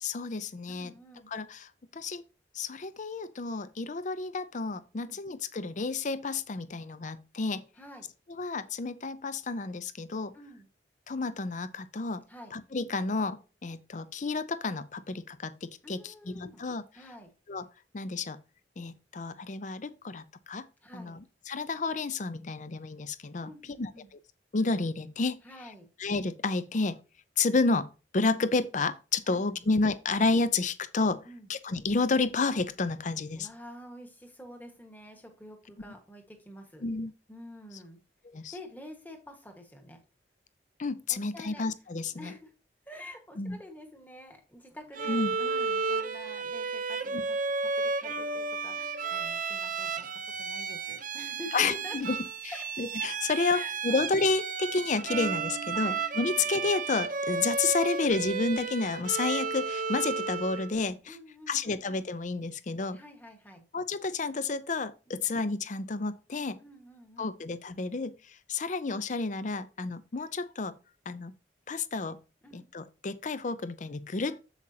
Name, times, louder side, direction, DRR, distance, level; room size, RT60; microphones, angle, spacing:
voice 1, 0.0-0.9 1.3-2.2 2.5-7.6 8.3-10.3 11.1-12.2 12.5-16.8 17.5-17.7 17.9-18.4 18.8-20.7 20.9-21.2 21.5-23.5 23.8-23.9 24.5-25.4 26.0-27.0 27.4-31.2 31.5-33.5 36.8-37.1 38.3-38.5 40.8-42.3 43.4-43.6 45.1-45.3 47.1-47.2 51.5-52.2 52.4-52.5 52.8-61.2 61.5-63.0 63.7-66.6 67.2-68.2 68.5-70.8 71.1-71.3 71.7-72.2 72.5-74.4, left 3 dB, 45° left, 0.5 m, -30 dB
voice 2, 0.7-1.3 5.0-5.2 7.8-8.1 10.3-10.7 12.3-12.5 15.8-16.6 16.9-17.3 20.8-21.2 23.4-24.1 25.4-25.9 29.3-29.7 31.2-31.5 33.3-36.8 37.3-38.0 38.5-40.0 41.1-41.7 42.1-42.5 42.8-47.4 47.7-50.1 50.4-52.1 52.5-52.7 53.5-54.1 55.7-56.0 56.3-56.5 61.0-61.8 62.9-63.6 65.1-65.3 66.6-67.3 72.4-72.7, equal, 10° left, 1.5 m, -48 dB
Bowed string instrument, 44.9-60.7, right 4 dB, 50° right, 0.7 m, -33 dB
8.0 x 7.5 x 2.8 m
head